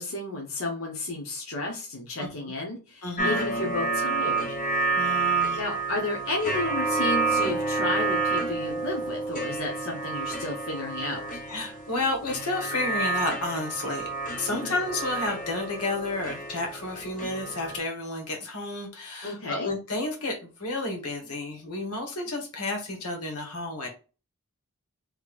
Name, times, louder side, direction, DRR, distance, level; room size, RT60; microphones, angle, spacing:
voice 1, 0.0-4.5 5.6-11.4 14.6-14.8 19.2-19.7, left 2 dB, 65° left, -1 dB, 1.1 m, -32 dB
voice 2, 2.2-2.5 3.0-3.4 5.0-5.6 11.5-14.1 14.4-23.9, left 2 dB, 85° left, 2 dB, 1.3 m, -31 dB
sound 1, 3.2-17.8, right 3 dB, 35° left, 0.8 m, -29 dB
3.7 x 3.2 x 2.4 m, 0.33 s
head